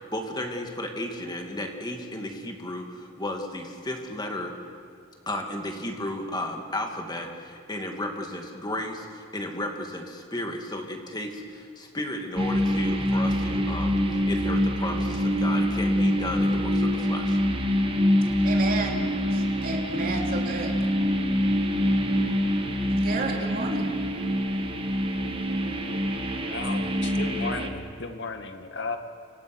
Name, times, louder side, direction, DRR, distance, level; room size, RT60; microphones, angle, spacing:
voice 1, 0.1-4.5 5.3-14.0 14.2-17.4, left 1 dB, 20° left, 2.5 m, -33 dB
sound 1, 12.4-27.7, equal, 25° right, 1.8 m, -25 dB
voice 2, 18.4-20.7 22.9-23.9, right 2 dB, 45° right, 3.2 m, -32 dB
voice 3, 26.5-29.0, left 3 dB, 55° left, 2.0 m, -34 dB
29.0 x 25.0 x 6.2 m
head